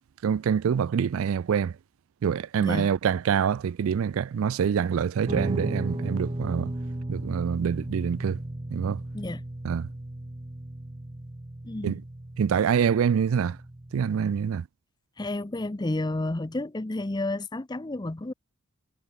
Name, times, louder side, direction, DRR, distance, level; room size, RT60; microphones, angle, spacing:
voice 1, 0.2-1.8 2.2-6.7 7.1-8.4 8.7-9.0 9.6-9.9 11.8-12.0 12.4-13.6 13.9-14.7, right 7 dB, 65° right, 0.3 m, -25 dB
voice 2, 2.6-2.9 9.1-9.4 11.6-12.0 15.2-18.3, left 2 dB, 20° left, 0.6 m, -31 dB
Guitar, 5.3-14.5, right 1 dB, 25° right, 0.8 m, -35 dB
head